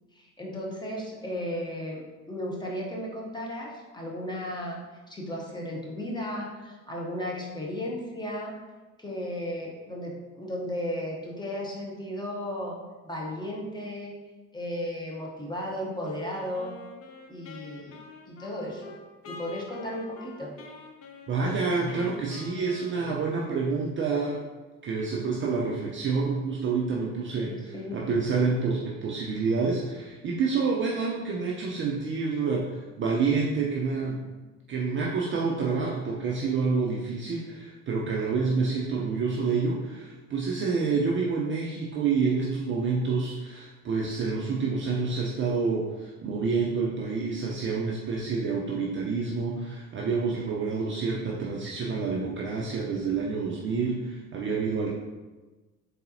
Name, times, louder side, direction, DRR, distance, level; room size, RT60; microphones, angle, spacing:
voice 1, 0.1-2.0 2.3-4.8 5.1-8.5 9.0-12.8 13.0-14.1 14.5-16.7 17.3-18.0 18.3-18.9 19.2-20.5 27.3-28.0, left 1 dB, 10° left, -3 dB, 1.0 m, -35 dB
Wind instrument woodwind instrument, 16.0-23.7, left 4 dB, 30° left, 0.6 m, -46 dB
voice 2, 21.3-24.5 24.8-27.5 27.9-34.3 34.7-55.0, right 4 dB, 25° right, -2 dB, 0.5 m, -28 dB
3.9 x 3.9 x 2.8 m, 1.2 s
figure-of-eight pair, 65°, 45 cm